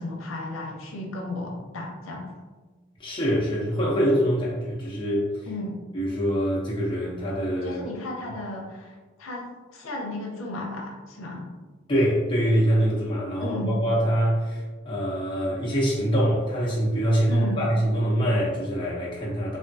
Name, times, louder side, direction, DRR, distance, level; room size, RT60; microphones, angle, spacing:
voice 1, 0.0-2.3 5.5-5.8 7.6-9.5 9.7-11.5 13.4-13.8 17.3-17.6, left 1 dB, 85° left, -1 dB, 0.6 m, -34 dB
voice 2, 3.0-5.3 5.9-7.8 11.9-19.6, equal, 25° left, -6 dB, 0.6 m, -24 dB
3.4 x 2.2 x 2.6 m, 1.3 s
head